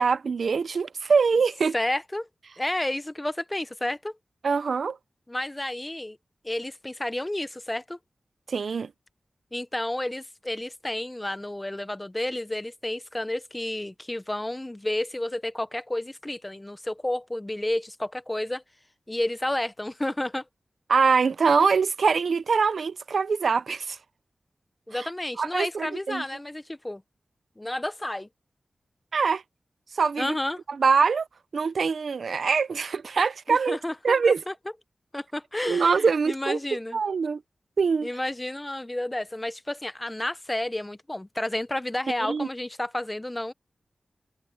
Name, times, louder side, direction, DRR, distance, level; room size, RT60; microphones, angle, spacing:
voice 1, 0.0-1.7 4.4-5.0 8.5-8.9 20.9-24.0 25.4-26.2 29.1-29.4 29.9-30.3 30.8-31.3 31.5-33.8 34.0-34.4 35.7-36.6 36.9-37.4 37.8-38.1 42.2-42.5, right 5 dB, 85° right, 0.6 m, -23 dB
voice 2, 1.7-2.3 2.6-4.2 5.3-6.2 6.4-8.0 9.5-18.6 19.1-20.5 24.9-27.0 27.6-28.3 30.2-30.6 33.5-34.2 34.5-34.6 35.1-37.0 38.0-43.5, left 1 dB, 20° left, 1.0 m, -31 dB
cardioid pair, 50°, 0 cm